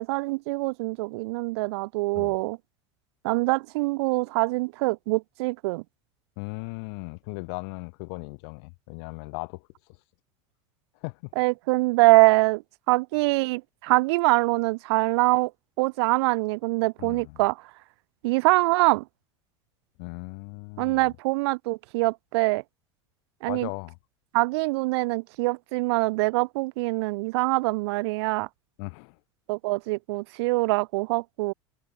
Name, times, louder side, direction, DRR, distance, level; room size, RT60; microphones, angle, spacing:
voice 1, 0.0-2.6 3.2-5.8 11.4-12.6 12.9-15.5 15.8-17.6 18.2-19.0 20.8-22.6 23.4-23.7 24.3-28.5 29.5-31.5, right 23 dB, 65° right, 2.5 m, -24 dB
voice 2, 6.4-9.7 11.0-11.3 17.0-17.4 20.0-21.1 23.5-24.0 28.8-29.2, left 35 dB, 60° left, 5.5 m, -37 dB
open air
hypercardioid pair, 80°, 15 cm